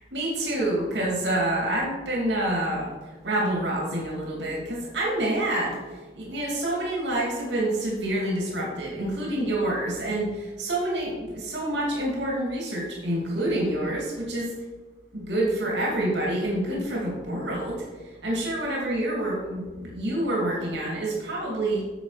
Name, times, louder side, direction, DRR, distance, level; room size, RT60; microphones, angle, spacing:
voice 1, 0.1-2.9 3.2-5.8 6.1-14.6 15.1-17.8 18.2-21.8, right 1 dB, 75° right, -3 dB, 2.5 m, -27 dB
9.2 x 7.2 x 4.9 m, 1.3 s
head